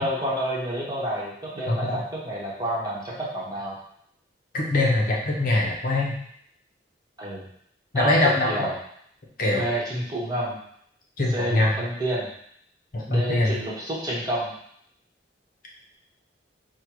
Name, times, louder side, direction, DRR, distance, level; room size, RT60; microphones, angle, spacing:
voice 1, 0.0-3.8 7.2-7.4 7.9-8.7 9.6-10.6 11.3-12.3 13.1-14.5, right 1 dB, 20° right, -6 dB, 1.1 m, -29 dB
voice 2, 1.7-2.0 4.5-6.1 7.9-8.7 9.4-9.6 11.2-11.7 12.9-13.5, left 2 dB, 45° left, -3 dB, 0.8 m, -22 dB
4.4 x 2.2 x 4.7 m, 0.68 s
head